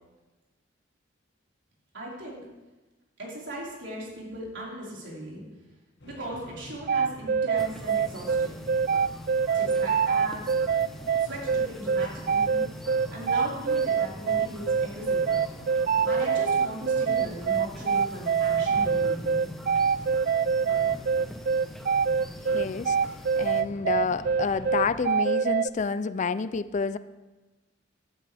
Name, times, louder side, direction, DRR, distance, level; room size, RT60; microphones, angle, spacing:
voice 1, 1.9-2.4 3.2-5.4 6.0-8.7 9.5-10.5 11.2-12.6 13.1-15.4 16.0-19.4, equal, 70° right, -5 dB, 4.8 m, -38 dB
sound 1, 6.0-25.0, left 1 dB, 65° left, 2.0 m, -46 dB
sound 2, 6.9-25.7, right 6 dB, 50° right, 0.3 m, -24 dB
sound 3, 7.5-23.6, equal, ahead, 1.1 m, -44 dB
voice 2, 22.5-23.0 23.4-27.0, left 5 dB, 40° left, 15 dB, 0.4 m, -29 dB
16.0 x 12.5 x 3.5 m, 1.1 s
head